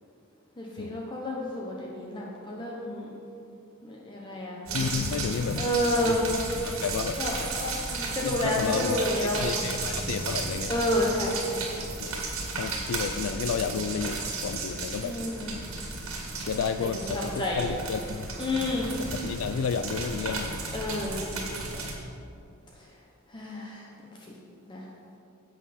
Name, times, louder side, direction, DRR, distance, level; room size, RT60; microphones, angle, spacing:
voice 1, 0.6-3.1 3.8-6.3 7.2-9.7 10.7-11.8 15.0-15.5 16.8-17.7 18.4-18.9 20.7-21.6 23.3-23.8 24.7-24.8, left 1 dB, 20° left, -3 dB, 0.9 m, -30 dB
voice 2, 4.7-6.3 6.6-7.2 8.2-10.7 12.0-12.2 12.6-15.1 16.5-18.3 19.0-20.6, left 6 dB, 70° left, 10 dB, 0.3 m, -32 dB
sound 1, 4.7-21.9, right 3 dB, 80° right, 1.8 m, -34 dB
10.5 x 7.6 x 4.2 m, 2.6 s
head